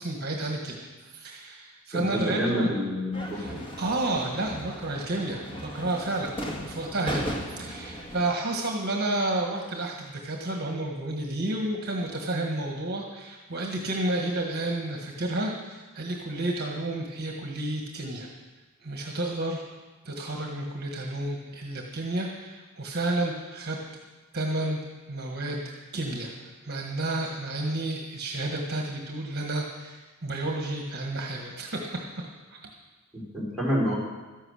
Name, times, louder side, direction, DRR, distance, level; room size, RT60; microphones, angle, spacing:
voice 1, 0.0-2.7 3.3-6.3 6.7-18.3 18.8-19.6 20.0-23.8 24.3-24.8 25.1-25.6 25.9-26.3 26.6-32.2 32.5-32.7, right 2 dB, 50° right, 1 dB, 1.6 m, -31 dB
voice 2, 1.9-3.6 7.0-7.2 33.1-33.9, equal, ahead, -7 dB, 4.6 m, -28 dB
sound 1, 3.1-8.3, equal, 25° left, 1.7 m, -37 dB
13.5 x 11.0 x 6.5 m, 1.2 s
head